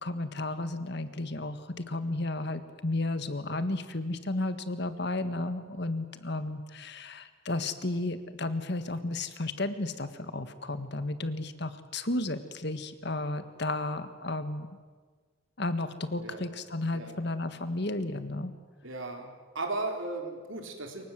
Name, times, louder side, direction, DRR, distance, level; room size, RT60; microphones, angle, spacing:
voice 1, 0.0-14.7 15.6-18.5, left 2 dB, 55° left, 11 dB, 1.7 m, -33 dB
voice 2, 18.8-19.3 19.5-21.0, right 2 dB, 70° right, 4 dB, 4.2 m, -36 dB
27.5 x 24.0 x 7.6 m, 1.5 s
head